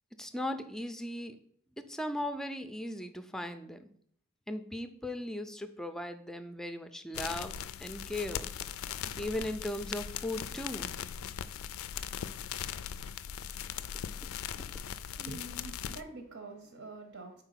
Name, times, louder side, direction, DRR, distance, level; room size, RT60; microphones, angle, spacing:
voice 1, 0.2-1.4 1.8-3.9 4.5-8.5 9.2-10.9 14.5-14.6, left 1 dB, ahead, 9 dB, 0.4 m, -38 dB
sound 1, 7.1-16.0, left 9 dB, 80° left, 0.3 m, -39 dB
voice 2, 14.7-17.4, right 2 dB, 75° right, 5 dB, 0.9 m, -46 dB
4.5 x 4.3 x 5.7 m, 0.65 s
head